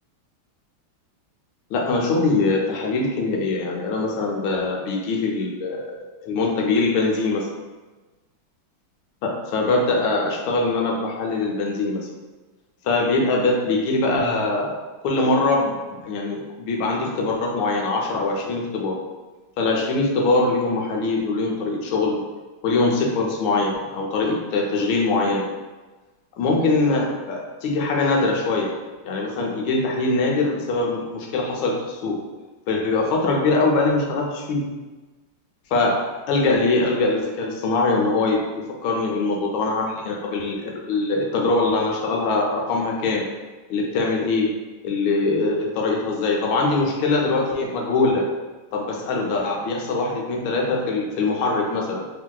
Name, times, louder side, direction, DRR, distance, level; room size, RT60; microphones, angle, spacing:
voice 1, 1.7-7.5 9.2-12.0 12.8-14.7 15.0-19.0 19.6-22.2 22.6-25.5 26.4-28.7 29.1-32.2 32.7-34.6 35.7-36.0 36.3-43.2 43.7-44.5 44.8-48.2 48.7-52.0, left 3 dB, 85° left, -1 dB, 1.4 m, -22 dB
3.3 x 2.6 x 2.2 m, 1.2 s
omnidirectional pair, 2.2 m